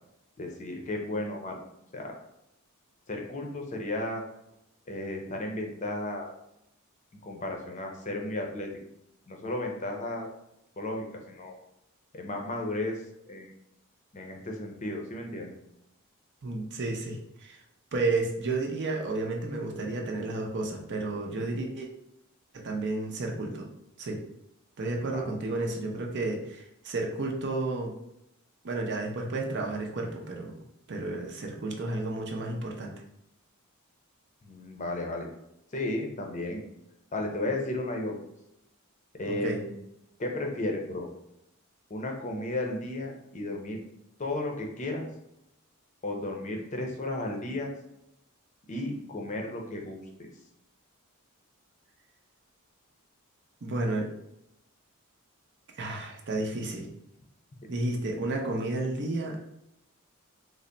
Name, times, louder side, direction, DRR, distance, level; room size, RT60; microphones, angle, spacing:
voice 1, 0.4-1.6 1.9-2.1 3.1-4.2 4.9-6.3 7.2-8.7 9.3-10.3 10.8-11.6 12.1-13.5 14.1-15.5 24.9-25.3 34.4-35.3 35.7-36.6 37.1-38.1 39.2-39.8 40.2-41.1 41.9-43.8 44.2-45.1 46.0-47.7 48.7-50.3 57.6-57.7, left 2 dB, 35° left, 2 dB, 0.6 m, -34 dB
voice 2, 16.4-17.6 17.9-21.9 22.5-23.7 24.0-24.2 24.8-27.9 28.6-30.6 30.9-33.0 39.2-39.6 53.6-54.1 55.8-56.9 57.7-59.5, right 2 dB, 55° right, 0 dB, 0.6 m, -32 dB
3.4 x 2.1 x 3.9 m, 0.83 s
head